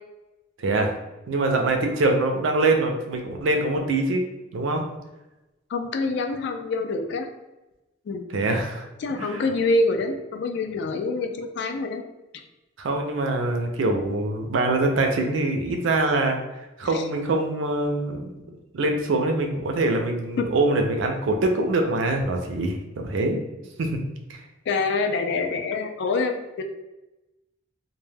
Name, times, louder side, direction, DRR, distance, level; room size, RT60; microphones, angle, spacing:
voice 1, 0.6-0.9 1.3-4.2 4.5-4.8 8.3-8.9 9.2-9.4 12.8-16.4 16.8-18.3 18.7-23.4 23.8-23.9 24.3-24.4, right 2 dB, 70° right, 3 dB, 0.4 m, -24 dB
voice 2, 5.7-7.3 8.1-8.2 9.0-12.0 16.9-17.0 20.4-20.5 24.7-26.6, left 3 dB, 60° left, 5 dB, 0.3 m, -26 dB
2.1 x 2.1 x 3.2 m, 1.0 s
head